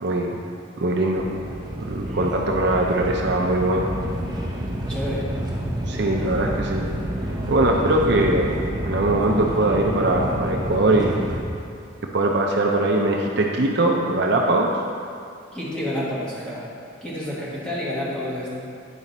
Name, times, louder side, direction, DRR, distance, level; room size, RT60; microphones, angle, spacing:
voice 1, 0.0-0.4 0.8-1.3 1.8-3.9 5.9-6.9 7.5-11.2 12.1-14.7, right 2 dB, 55° right, 0 dB, 0.6 m, -21 dB
sound 1, 1.2-11.4, right 1 dB, 20° right, 0.8 m, -29 dB
voice 2, 4.9-5.3 15.5-16.6 17.0-18.5, left 1 dB, 5° left, -9 dB, 1.7 m, -29 dB
9.5 x 5.0 x 4.2 m, 2.5 s
head